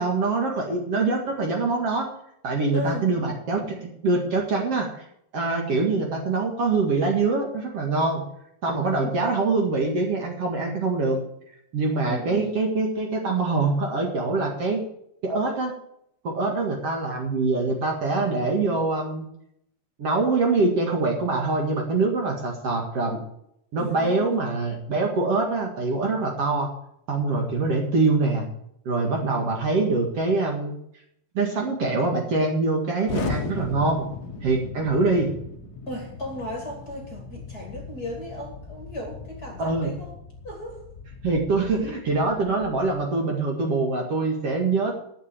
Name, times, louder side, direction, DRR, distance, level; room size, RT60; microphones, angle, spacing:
voice 1, 0.0-2.1 2.4-4.9 5.3-8.2 8.6-11.2 11.7-14.8 15.2-15.7 16.2-19.3 20.0-23.2 23.7-26.7 27.1-28.5 28.9-30.7 31.3-34.1 34.4-35.3 39.6-39.9 41.2-44.9, right 3 dB, 50° right, 1 dB, 2.6 m, -24 dB
voice 2, 2.7-3.1 8.9-9.2 12.0-12.5 23.8-24.4 35.9-40.1 40.4-40.9, left 1 dB, 30° left, 1 dB, 2.3 m, -35 dB
Explosion, 33.1-43.0, left 4 dB, 80° left, 0.8 m, -37 dB
11.0 x 7.4 x 8.5 m, 0.73 s
omnidirectional pair, 3.9 m